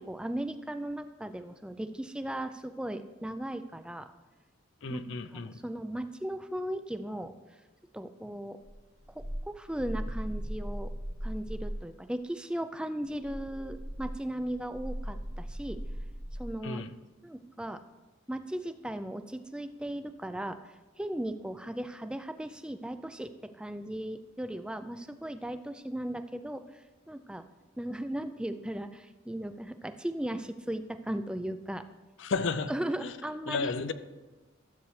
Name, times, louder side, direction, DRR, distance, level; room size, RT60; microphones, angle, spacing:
voice 1, 0.0-4.1 4.9-7.3 7.9-8.6 9.1-10.9 11.2-15.8 16.4-16.9 17.2-17.8 18.3-27.4 27.8-31.8 32.7-33.7, right 1 dB, 5° right, 0.3 m, -37 dB
voice 2, 4.8-5.6 16.6-16.9 32.2-32.7 33.0-33.2 33.5-33.9, left 4 dB, 60° left, 0.5 m, -33 dB
sound 1, 8.7-11.9 13.1-16.5, equal, 50° right, 1.5 m, -38 dB
13.0 x 8.1 x 3.2 m
head